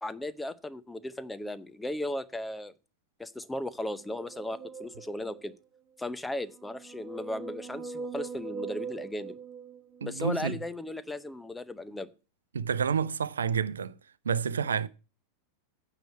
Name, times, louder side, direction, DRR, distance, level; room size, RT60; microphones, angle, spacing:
voice 1, 0.0-2.7 3.2-5.5 6.0-9.4 10.0-12.1, left 1 dB, 5° left, 0.7 m, -36 dB
sound 1, 3.9-5.5 6.4-10.3, right 5 dB, 30° right, 1.1 m, -42 dB
voice 2, 10.0-10.6 12.5-13.9 14.2-14.9, right 6 dB, 70° right, 0.6 m, -29 dB
9.2 x 4.8 x 7.8 m
figure-of-eight pair, 90°, 0 cm